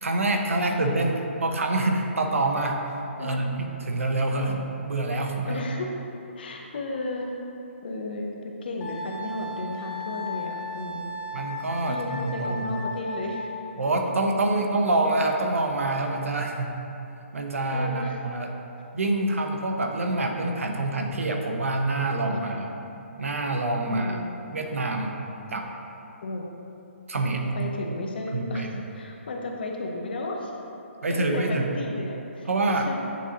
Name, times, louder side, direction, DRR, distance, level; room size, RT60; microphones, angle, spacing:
voice 1, 0.0-2.8 3.2-4.5 4.9-5.7 11.3-12.8 13.8-16.8 17.3-18.6 18.9-22.7 23.2-24.2 24.5-25.1 25.5-25.7 27.1-27.6 28.3-28.8 31.0-31.8 32.5-32.9, right 2 dB, 85° right, 3 dB, 0.8 m, -26 dB
voice 2, 3.2-3.5 4.4-4.6 5.4-5.9 6.3-7.4 7.8-11.1 11.9-13.6 14.6-14.7 17.7-18.2 22.4-22.6 23.9-24.4 26.2-26.4 27.5-30.5 31.1-33.0, left 2 dB, 45° left, 1 dB, 0.8 m, -34 dB
Wind instrument woodwind instrument, 8.8-13.7, left 2 dB, 10° left, 0.4 m, -35 dB
9.2 x 4.1 x 2.9 m, 2.9 s
hypercardioid pair, 170°, 7 cm